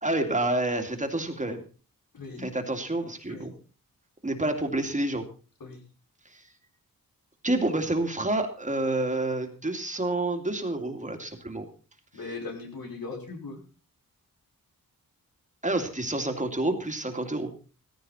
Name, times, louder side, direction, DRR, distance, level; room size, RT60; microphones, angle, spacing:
voice 1, 0.0-1.6 2.4-3.5 4.2-5.2 6.3-6.4 7.4-11.7 15.6-17.5, right 2 dB, 20° right, 5 dB, 2.5 m, -28 dB
voice 2, 2.1-2.5 3.3-3.5 5.6-5.8 12.1-13.6, left 3 dB, 80° left, 1 dB, 5.8 m, -38 dB
17.0 x 15.5 x 4.3 m, 0.36 s
wide cardioid pair, 155°, 35 cm